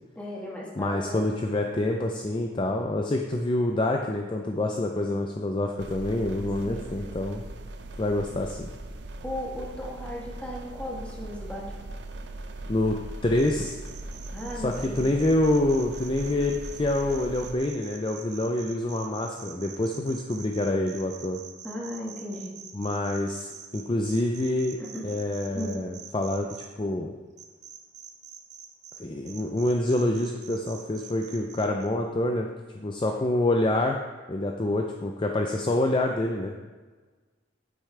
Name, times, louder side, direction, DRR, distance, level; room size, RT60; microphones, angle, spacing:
voice 1, 0.1-1.3 6.6-7.2 9.2-11.9 14.3-15.2 21.6-22.5 24.8-25.0 25.5-25.9, left 1 dB, 5° left, -4 dB, 1.6 m, -36 dB
voice 2, 0.8-7.4 8.0-8.7 12.7-13.8 14.5-21.4 22.7-27.1 29.0-34.0 34.3-36.6, left 1 dB, 25° left, 2 dB, 0.4 m, -27 dB
sound 1, 5.8-17.5, right 2 dB, 65° right, 0.6 m, -40 dB
sound 2, 13.4-26.7 27.4-29.0 29.3-31.9, right 7 dB, 40° right, 0.9 m, -45 dB
9.1 x 8.3 x 3.3 m, 1.4 s
head